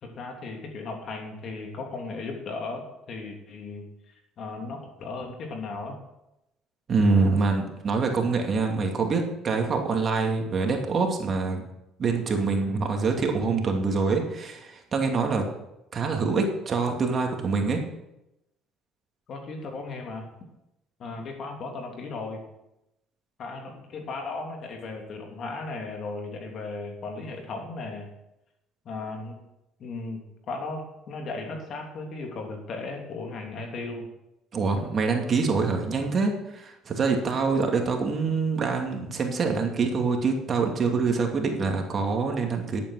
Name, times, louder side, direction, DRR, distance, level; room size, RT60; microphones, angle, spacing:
voice 1, 0.0-6.0 19.3-20.3 21.0-22.4 23.4-28.1 28.8-29.4 29.8-34.1, left 3 dB, 55° left, 2 dB, 2.9 m, -36 dB
voice 2, 6.9-11.7 12.0-15.4 15.9-17.8 34.5-42.8, right 4 dB, 45° right, 3 dB, 2.5 m, -25 dB
11.0 x 8.6 x 6.4 m, 0.89 s
supercardioid pair, 80°, 0 cm